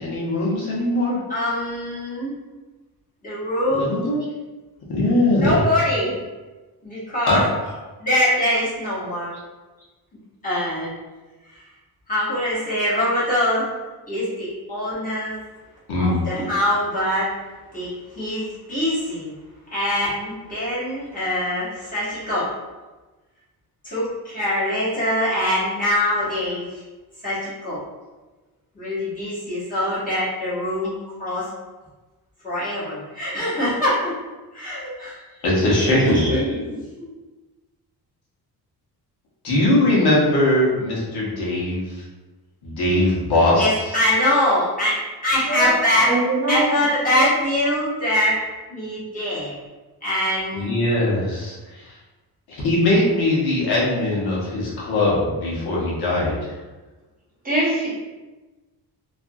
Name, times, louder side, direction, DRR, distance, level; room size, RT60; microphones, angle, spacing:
voice 1, 0.0-1.2 3.8-4.2 4.9-5.6 7.3-7.4 15.9-16.1 35.4-36.3 39.4-42.0 42.6-43.7 50.5-51.9 52.5-56.5, left 1 dB, 75° left, -5 dB, 1.0 m, -20 dB
voice 2, 1.3-2.3 3.2-4.0 5.4-6.2 6.8-7.4 8.0-9.3 10.4-10.9 11.5-11.6 12.1-13.7 14.1-15.3 16.0-17.3 17.7-17.9 18.2-19.3 19.7-22.5 23.8-26.6 27.2-27.8 28.7-30.9 31.2-31.5 32.4-34.0 34.5-35.2 35.9-37.1 43.6-45.0 45.2-46.2 46.5-48.4 48.7-49.5 50.0-50.7, left 1 dB, 20° left, -11 dB, 1.1 m, -23 dB
voice 3, 46.1-46.6 47.1-47.3 57.4-58.0, right 2 dB, 20° right, -8 dB, 0.9 m, -22 dB
2.6 x 2.4 x 2.6 m, 1.2 s
wide cardioid pair, 180°, 39 cm